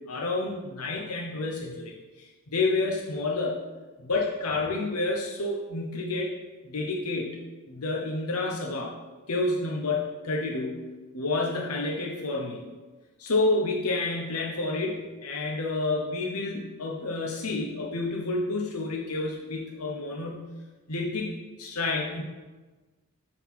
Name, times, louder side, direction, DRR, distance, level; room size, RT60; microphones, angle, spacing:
voice 1, 0.1-3.6 4.0-6.3 6.6-9.0 9.3-10.8 11.1-12.6 13.2-20.5 20.9-21.3 21.6-22.2, left 2 dB, 80° left, -1 dB, 1.0 m, -29 dB
7.3 x 4.1 x 5.8 m, 1.3 s
head